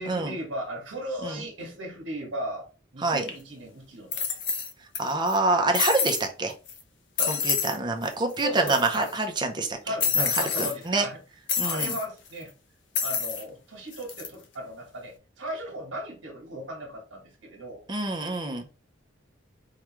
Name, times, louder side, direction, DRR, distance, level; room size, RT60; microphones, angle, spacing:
voice 1, 0.0-2.6 2.9-4.2 5.9-6.0 7.2-7.3 8.4-9.4 9.8-11.2 11.6-12.5 13.0-17.9, right 1 dB, 80° right, 1.3 m, -36 dB
sound 1, 3.3-3.4 4.1-5.0 5.3-5.4 5.7-6.3 6.7-6.8 7.2-7.8 8.0-8.1 8.4-9.1 10.0-10.7 11.5-12.0 12.9-13.4 13.9-14.3, left 6 dB, 70° left, 0.6 m, -28 dB
voice 2, 5.0-6.5 7.3-9.8 10.2-10.3 10.6-11.0 11.6-11.9 17.9-18.6, right 2 dB, 25° right, 0.6 m, -26 dB
4.7 x 2.3 x 3.0 m
head